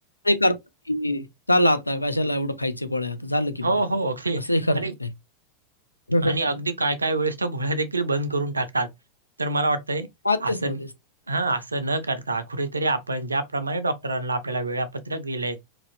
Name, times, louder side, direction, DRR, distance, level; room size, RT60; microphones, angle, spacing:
voice 1, 0.2-0.6 0.9-3.7 4.5-5.1 6.1-6.4 10.2-10.9, left 1 dB, 85° left, 0.3 m, -23 dB
voice 2, 3.6-4.4 4.7-4.9 6.2-8.9 9.4-10.1 10.4-10.8 11.3-15.6, right 2 dB, 80° right, 0.4 m, -26 dB
2.9 x 2.6 x 2.4 m
figure-of-eight pair, 90°, 0 cm